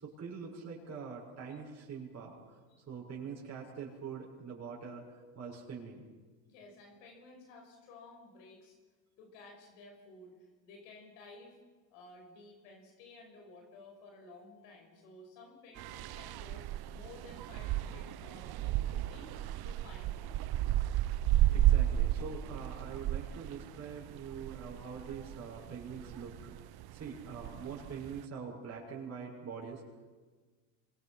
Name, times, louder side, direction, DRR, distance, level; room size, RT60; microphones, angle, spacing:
voice 1, 0.0-2.6 2.9-6.0 21.5-29.8, right 6 dB, 30° right, -3 dB, 6.8 m, -44 dB
voice 2, 6.5-8.7 9.2-11.6 11.9-16.6 16.9-19.3 19.6-20.4, left 3 dB, 75° left, 2 dB, 5.9 m, -54 dB
sound 1, 15.8-28.2, right 13 dB, 50° right, 1.1 m, -33 dB
26.0 x 22.0 x 5.9 m, 1.4 s
supercardioid pair, 85°, 49 cm